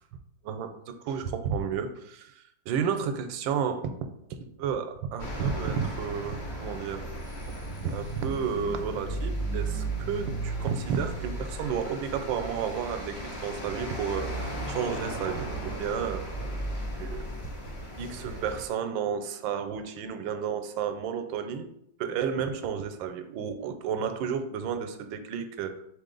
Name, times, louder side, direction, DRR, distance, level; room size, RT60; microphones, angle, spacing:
voice 1, 0.4-3.9 4.3-7.1 7.5-16.3 17.0-17.4 18.0-21.7 22.0-25.7, right 7 dB, 85° right, 8 dB, 1.3 m, -32 dB
sound 1, 5.2-18.7, right 1 dB, 35° left, 0.8 m, -35 dB
4.1 x 3.3 x 3.8 m, 0.75 s
omnidirectional pair, 2.0 m